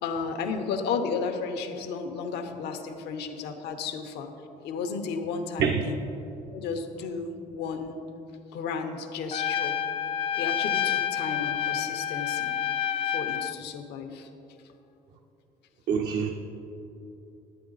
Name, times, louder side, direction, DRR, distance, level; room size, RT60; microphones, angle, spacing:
voice 1, 0.0-4.3 4.6-6.0 6.5-8.0 8.5-9.8 10.4-12.5 13.1-14.3, left 5 dB, 80° left, 6 dB, 0.9 m, -33 dB
Trumpet, 9.3-13.6, left 9 dB, 35° left, 0.3 m, -28 dB
voice 2, 15.9-16.3, right 6 dB, 75° right, 3 dB, 0.6 m, -25 dB
11.0 x 8.9 x 4.0 m, 2.9 s
cardioid pair, 110°, 17 cm